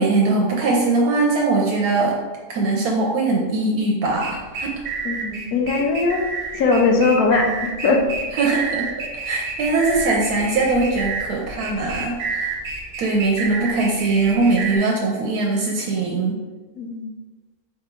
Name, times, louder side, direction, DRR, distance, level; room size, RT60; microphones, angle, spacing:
voice 1, 0.0-2.2 2.5-4.7 8.3-8.9 9.2-12.5 13.0-16.4, right 3 dB, 85° right, -1 dB, 1.1 m, -21 dB
sound 1, 4.0-14.8, right 4 dB, 60° right, 1.0 m, -30 dB
voice 2, 5.0-6.2 6.5-8.0 16.8-17.1, left 3 dB, 80° left, 1 dB, 1.2 m, -20 dB
4.2 x 3.5 x 3.1 m, 1.3 s
omnidirectional pair, 1.6 m